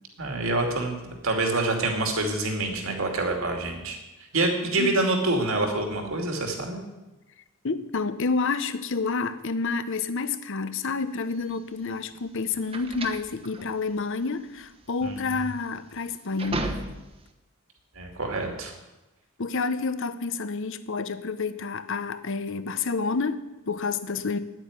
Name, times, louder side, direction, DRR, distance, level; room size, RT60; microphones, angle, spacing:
voice 1, 0.2-4.0 4.3-6.8 15.0-15.2 18.0-18.7, right 2 dB, 65° right, 2.5 m, -26 dB
voice 2, 7.6-16.7 19.4-24.4, left 4 dB, 60° left, 0.8 m, -29 dB
sound 1, 11.3-17.3, right 2 dB, 25° right, 1.1 m, -36 dB
9.4 x 9.0 x 9.6 m
head